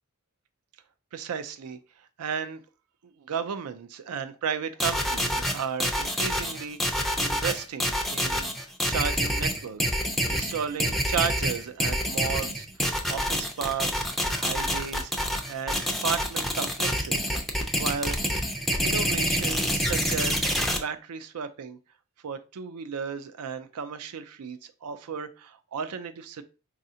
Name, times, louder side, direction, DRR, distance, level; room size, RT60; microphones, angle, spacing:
voice 1, 1.1-2.6 3.0-9.9 10.2-12.7 13.1-14.1 14.3-15.1 15.5-17.3 17.8-18.2 18.8-21.8 22.2-26.4, right 7 dB, 85° right, 0.4 m, -34 dB
sound 1, 4.8-20.8, equal, ahead, 0.4 m, -27 dB
4.1 x 2.4 x 2.7 m
head